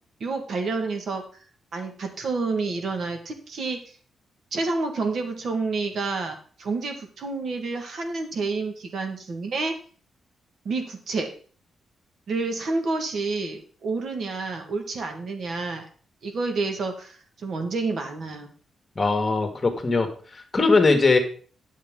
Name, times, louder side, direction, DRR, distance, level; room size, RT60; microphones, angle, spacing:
voice 1, 0.2-1.2 1.7-3.8 4.5-9.7 10.6-11.3 12.3-15.9 16.2-18.5, right 3 dB, 60° right, 4 dB, 1.5 m, -29 dB
voice 2, 18.9-20.1 20.5-21.2, left 3 dB, 30° left, 5 dB, 1.7 m, -20 dB
9.3 x 7.3 x 3.7 m, 0.42 s
cardioid pair, 95°, 0 cm